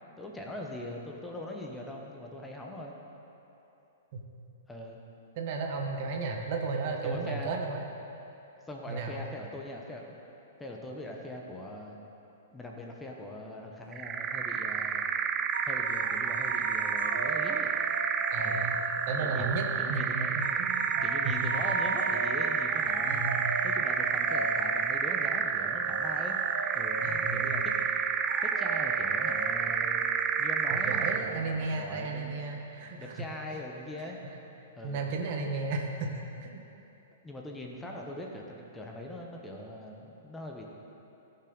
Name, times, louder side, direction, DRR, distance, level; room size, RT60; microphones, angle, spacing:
voice 1, 0.2-3.0 4.7-5.0 7.0-7.5 8.7-10.2 10.6-12.0 12.5-15.0 15.6-17.7 18.4-18.7 19.2-20.4 21.0-23.3 23.6-26.4 26.7-27.9 28.4-30.1 30.4-32.4 33.0-34.2 34.8-35.1 37.2-40.6, left 1 dB, 10° left, 0 dB, 1.0 m, -41 dB
voice 2, 5.3-7.9 8.9-9.2 18.3-18.8 19.1-21.5 23.1-23.5 27.0-27.6 30.7-33.2 33.5-33.6 34.1-34.2 34.8-36.1 36.4-36.6, right 3 dB, 50° right, 2 dB, 1.2 m, -34 dB
sound 1, 13.9-31.3, right 7 dB, 25° right, 0.4 m, -30 dB
sound 2, 15.5-19.4 20.4-31.7, right 2 dB, 80° right, 0.8 m, -39 dB
15.0 x 5.8 x 4.0 m, 2.9 s
hypercardioid pair, 115°, 0 cm